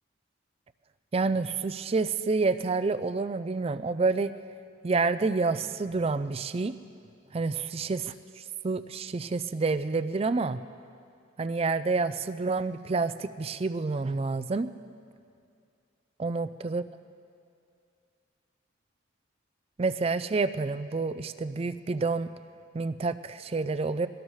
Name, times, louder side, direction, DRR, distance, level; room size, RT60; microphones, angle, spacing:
voice 1, 1.1-4.3 4.8-6.8 7.3-10.6 11.4-14.7 16.2-16.8 19.8-22.3 22.7-24.1, right 3 dB, 30° right, 12 dB, 0.3 m, -28 dB
22.0 x 17.5 x 3.2 m, 2.4 s
head